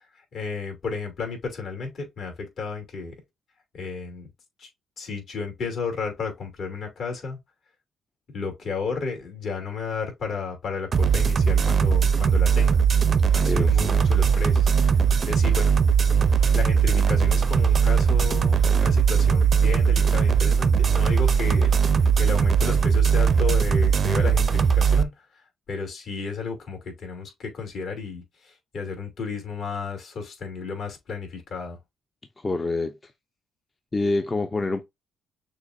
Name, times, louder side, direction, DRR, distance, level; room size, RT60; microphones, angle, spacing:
voice 1, 0.3-3.2 3.7-4.3 4.6-4.7 5.0-7.4 8.3-12.8 13.3-15.0 15.3-15.7 16.5-21.7 22.2-25.1 25.7-31.8, left 5 dB, 65° left, 2.7 m, -32 dB
sound 1, 10.9-25.0, right 6 dB, 45° right, 0.5 m, -20 dB
voice 2, 13.3-14.0 32.4-33.1 33.9-34.8, left 2 dB, 25° left, 0.6 m, -27 dB
6.6 x 2.6 x 2.6 m
cardioid pair, 90°, 0 cm